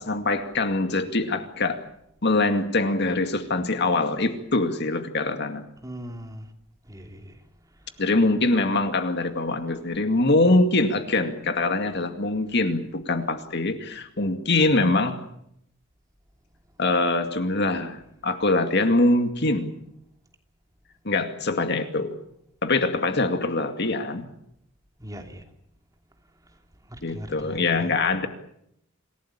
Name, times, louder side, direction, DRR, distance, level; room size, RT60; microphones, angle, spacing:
voice 1, 0.0-1.8 2.2-5.6 8.0-15.2 16.8-19.7 21.0-22.2 22.6-24.3 27.0-28.3, left 2 dB, 55° left, 7 dB, 2.3 m, -23 dB
voice 2, 5.8-6.5 6.9-7.4 25.0-25.4 26.9-27.9, equal, 15° right, 4 dB, 3.0 m, -39 dB
27.0 x 17.0 x 8.9 m, 0.76 s
head